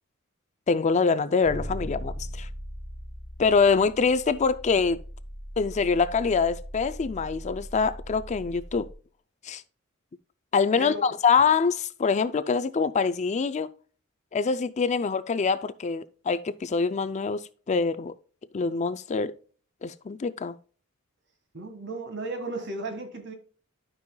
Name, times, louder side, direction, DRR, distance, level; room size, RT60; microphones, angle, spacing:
voice 1, 0.7-2.5 3.4-5.0 5.6-8.9 9.4-9.6 10.5-13.7 14.3-17.4 17.7-18.1 18.5-19.3 19.8-20.5, left 5 dB, 35° left, 0.4 m, -24 dB
sound 1, 1.4-8.9, equal, 30° right, 3.6 m, -39 dB
voice 2, 10.8-11.1 21.5-23.3, right 2 dB, 55° right, 1.7 m, -35 dB
12.0 x 5.5 x 2.2 m
head